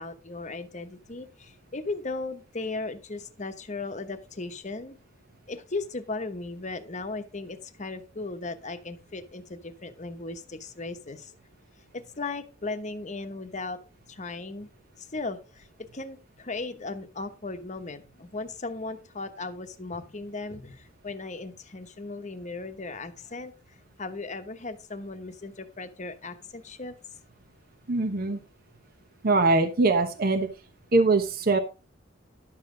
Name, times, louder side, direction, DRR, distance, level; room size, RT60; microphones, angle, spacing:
voice 1, 0.0-5.0 5.5-11.3 11.9-13.8 14.1-14.7 15.0-27.0, left 3 dB, 35° left, 8 dB, 1.0 m, -37 dB
voice 2, 27.9-28.4 29.2-30.5 30.9-31.6, right 3 dB, 50° right, 6 dB, 1.0 m, -22 dB
11.5 x 7.3 x 3.8 m, 0.32 s
head